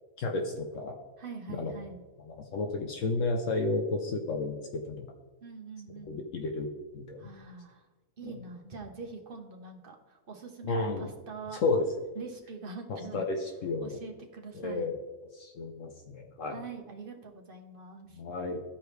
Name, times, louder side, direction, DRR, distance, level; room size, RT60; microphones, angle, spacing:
voice 1, 0.2-1.0 1.5-1.7 2.3-5.1 6.1-6.7 6.9-7.3 8.2-8.4 10.7-11.1 11.6-11.9 12.9-14.0 14.5-14.9 15.3-16.6 18.2-18.6, left 3 dB, 70° left, 3 dB, 1.1 m, -32 dB
voice 2, 1.2-2.0 5.4-6.2 7.2-7.9 8.2-11.6 12.1-13.3 13.8-14.9 16.5-18.2, right 4 dB, 45° right, 2 dB, 1.2 m, -44 dB
14.0 x 4.7 x 3.3 m, 1.2 s
omnidirectional pair, 1.4 m